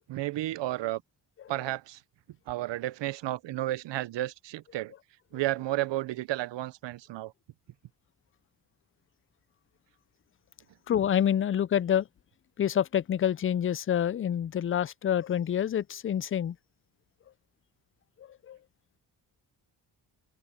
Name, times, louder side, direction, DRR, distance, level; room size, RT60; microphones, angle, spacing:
voice 1, 0.1-1.0 1.5-2.0 2.5-4.9 5.3-7.3, right 15 dB, 80° right, 0.8 m, -32 dB
voice 2, 10.9-12.1 12.6-16.6 18.2-18.6, left 9 dB, 35° left, 0.4 m, -27 dB
cardioid pair, 75°, 43 cm